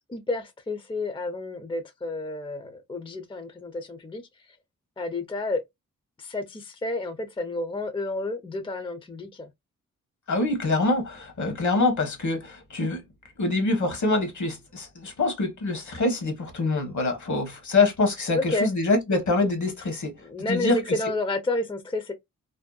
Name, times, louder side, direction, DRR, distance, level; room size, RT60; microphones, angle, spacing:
voice 1, 0.1-4.2 5.0-5.6 6.2-9.5 18.3-18.7 20.2-22.1, left 2 dB, 15° left, 0.4 m, -30 dB
voice 2, 10.3-13.0 13.4-20.8, left 3 dB, 60° left, 1.0 m, -25 dB
2.6 x 2.1 x 2.2 m
cardioid pair, 55°, 33 cm